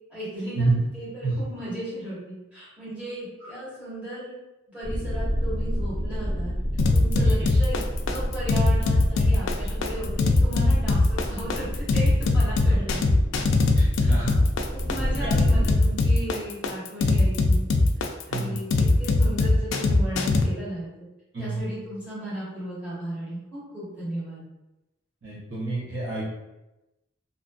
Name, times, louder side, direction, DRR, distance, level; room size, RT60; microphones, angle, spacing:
voice 1, 0.1-4.4 4.7-6.5 6.9-7.8 8.1-13.2 14.0-14.2 14.7-17.6 18.3-20.9 21.4-24.5, right 1 dB, 5° right, -12 dB, 1.4 m, -35 dB
sound 1, 4.8-15.7, equal, 10° left, 0.9 m, -30 dB
sound 2, 6.8-20.4, left 2 dB, 65° left, 0.3 m, -21 dB
voice 2, 13.7-14.4 15.2-15.3 18.3-18.5 21.3-21.6 25.2-26.3, right 3 dB, 65° right, -7 dB, 1.0 m, -28 dB
2.7 x 2.5 x 2.4 m, 0.97 s
head